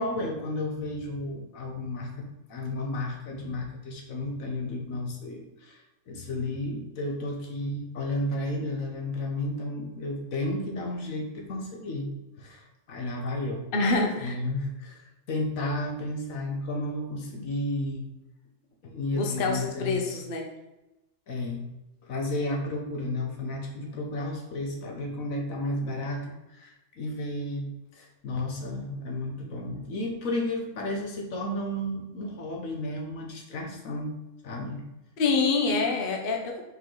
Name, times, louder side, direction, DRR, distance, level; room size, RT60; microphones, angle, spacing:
voice 1, 0.0-12.1 12.4-13.7 14.2-18.0 18.8-20.2 21.3-21.7 22.0-34.1 34.4-34.8, left 1 dB, 70° left, 2 dB, 1.4 m, -32 dB
voice 2, 13.7-14.3 19.1-20.5 35.2-36.6, left 3 dB, 45° left, 1 dB, 1.0 m, -26 dB
5.1 x 4.7 x 3.8 m, 0.96 s
omnidirectional pair, 1.5 m